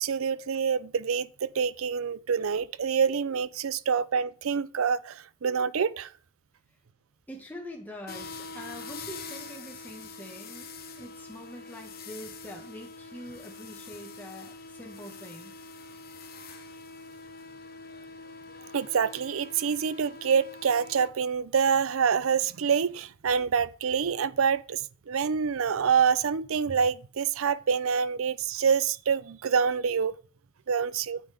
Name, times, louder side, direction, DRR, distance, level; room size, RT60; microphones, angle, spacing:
voice 1, 0.0-6.1 18.7-24.8 25.1-30.1 30.7-31.2, right 6 dB, 75° right, 0.5 m, -26 dB
voice 2, 7.3-10.7 11.0-15.5, equal, 10° left, 1.5 m, -44 dB
sound 1, 8.1-21.1, left 4 dB, 45° left, 1.1 m, -44 dB
9.0 x 8.9 x 3.5 m
head